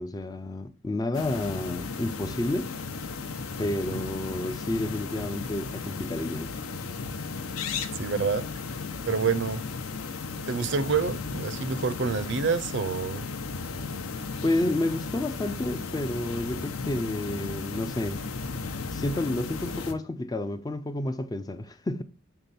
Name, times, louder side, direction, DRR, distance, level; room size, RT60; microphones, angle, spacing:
voice 1, 0.0-2.7 3.6-6.5 11.6-11.7 14.4-18.2 18.9-22.0, left 1 dB, 15° left, 0.3 m, -30 dB
sound 1, 1.1-19.9, left 4 dB, 80° left, 0.7 m, -35 dB
voice 2, 7.9-8.5 9.1-9.6 10.5-13.3, right 5 dB, 55° right, 0.5 m, -27 dB
6.8 x 3.4 x 4.1 m
head